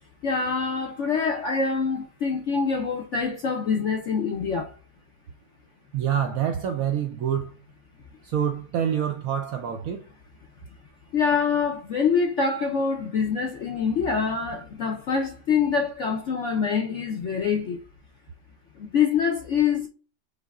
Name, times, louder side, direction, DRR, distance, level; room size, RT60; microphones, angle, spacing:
voice 1, 0.2-4.7 11.1-17.8 18.8-19.9, left 6 dB, 65° left, 0.7 m, -25 dB
voice 2, 5.9-7.6 8.2-10.0, right 9 dB, 75° right, 0.8 m, -26 dB
5.5 x 2.1 x 3.4 m
omnidirectional pair, 1.9 m